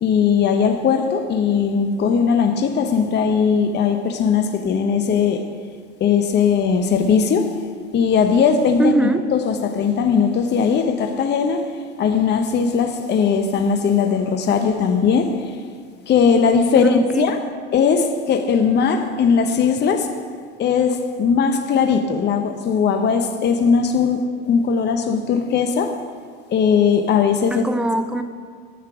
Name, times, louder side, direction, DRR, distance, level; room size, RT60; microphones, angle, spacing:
voice 1, 0.0-5.4 6.0-7.5 7.9-11.7 12.0-15.5 16.1-17.4 17.7-20.1 20.6-24.2 24.5-26.0 26.5-27.6, left 6 dB, 30° left, 6 dB, 0.8 m, -19 dB
voice 2, 8.8-9.3 16.8-17.3 27.5-28.2, right 2 dB, 5° right, 9 dB, 0.6 m, -21 dB
10.0 x 6.7 x 5.9 m, 2.1 s
hypercardioid pair, 85°, 33 cm